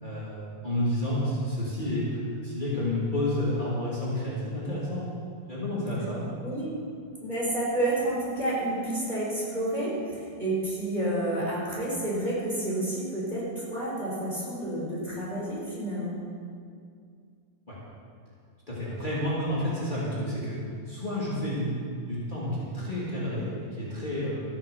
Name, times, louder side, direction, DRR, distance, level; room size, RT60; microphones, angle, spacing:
voice 1, 0.0-5.0 5.5-6.2 17.7-17.8 18.7-20.6 20.9-21.7 22.1-24.4, left 1 dB, 25° left, -8 dB, 2.9 m, -30 dB
voice 2, 6.4-6.7 7.2-16.2, right 1 dB, 25° right, -7 dB, 4.2 m, -30 dB
14.5 x 9.7 x 6.8 m, 2.3 s
omnidirectional pair, 2.0 m